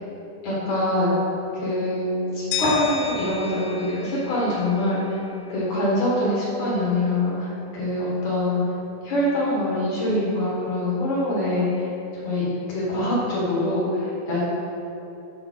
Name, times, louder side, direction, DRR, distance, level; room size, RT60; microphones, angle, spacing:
voice 1, 0.4-1.2 1.6-5.0 5.5-8.6 9.0-11.7 12.2-14.4, left 1 dB, 60° left, -7 dB, 2.1 m, -24 dB
sound 1, 2.5-5.4, left 6 dB, 85° left, 2.6 m, -33 dB
8.1 x 5.0 x 6.3 m, 2.9 s
omnidirectional pair, 5.9 m